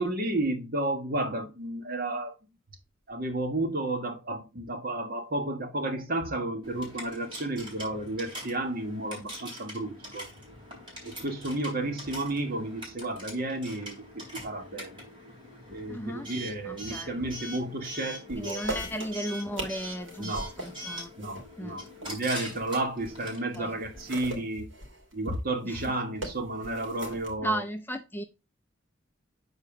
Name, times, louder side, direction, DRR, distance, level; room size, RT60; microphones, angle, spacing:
voice 1, 0.0-2.3 3.1-10.2 11.0-13.9 14.4-15.0 15.7-18.6 20.2-20.5 21.2-24.7 25.1-27.6, right 2 dB, 50° right, 1.5 m, -32 dB
Coin (dropping) / Alarm, 6.6-24.1, equal, 25° right, 3.8 m, -43 dB
voice 2, 15.9-16.3 16.6-17.2 18.4-21.1 21.6-21.8 23.5-23.7 25.6-25.9 27.4-28.2, right 1 dB, 10° left, 0.7 m, -35 dB
sound 1, 18.3-23.2 23.5-27.3, right 2 dB, 75° right, 2.7 m, -40 dB
7.0 x 4.4 x 4.8 m
head